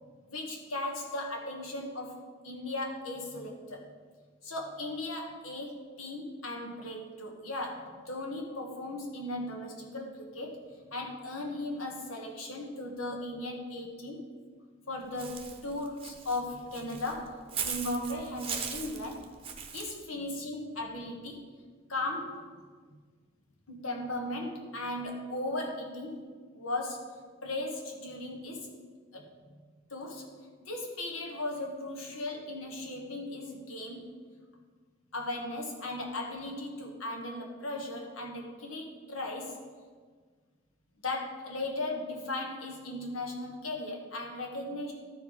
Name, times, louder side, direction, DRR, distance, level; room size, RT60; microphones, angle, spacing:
voice 1, 0.3-2.2 2.4-3.9 4.4-10.6 10.9-14.2 14.9-19.3 19.7-21.4 21.9-22.5 23.7-26.3 26.5-27.0 27.4-28.7 29.1-29.3 29.9-30.2 30.6-34.1 35.1-39.6 41.0-44.9, left 2 dB, 80° left, 1 dB, 1.6 m, -37 dB
Walk footsteps / Bird, 15.2-19.9, right 6 dB, 30° right, 0.8 m, -39 dB
13.0 x 4.7 x 5.0 m, 1.6 s
head